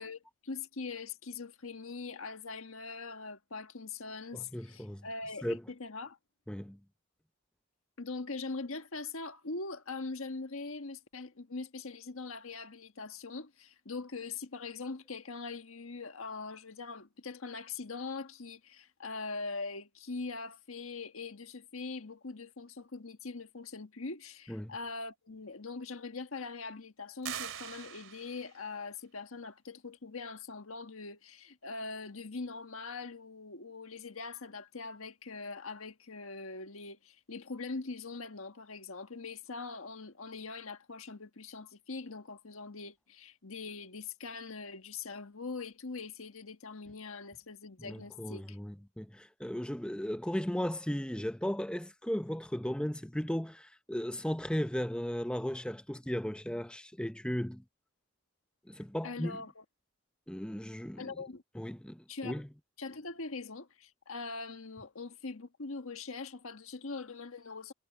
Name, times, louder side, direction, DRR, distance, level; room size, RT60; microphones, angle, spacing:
voice 1, 0.0-6.2 8.0-48.6 59.0-59.6 61.0-61.4 62.1-62.4 62.8-67.7, left 3 dB, 75° left, 1.5 m, -42 dB
voice 2, 4.3-5.1 5.4-5.6 6.5-6.8 24.5-24.7 47.8-57.6 58.7-59.4 60.3-61.2 61.5-62.5, equal, 5° left, 0.6 m, -36 dB
sound 1, 27.2-28.6, right 9 dB, 70° right, 3.2 m, -42 dB
head